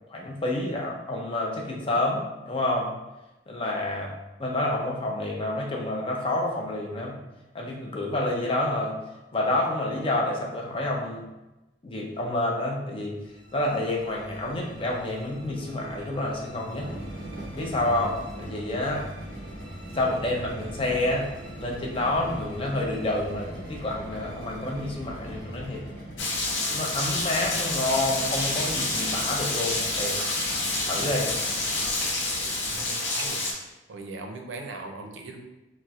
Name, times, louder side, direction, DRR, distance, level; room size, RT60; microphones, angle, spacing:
voice 1, 0.1-2.9 3.5-4.1 4.4-7.1 7.5-9.0 9.3-11.2 11.8-13.2 13.5-16.9 17.5-19.1 19.9-21.3 21.6-25.8 26.7-30.2 30.9-31.3, left 1 dB, 30° left, -1 dB, 0.5 m, -28 dB
sound 1, 13.2-27.6, right 1 dB, 25° right, 0.8 m, -44 dB
sound 2, 16.7-33.1, equal, 55° left, 1.0 m, -42 dB
Rain, 26.2-33.5, left 2 dB, 85° left, 0.6 m, -28 dB
voice 2, 32.7-33.5 33.9-35.4, right 3 dB, 80° right, 3 dB, 0.4 m, -39 dB
4.1 x 2.1 x 2.3 m, 0.99 s
head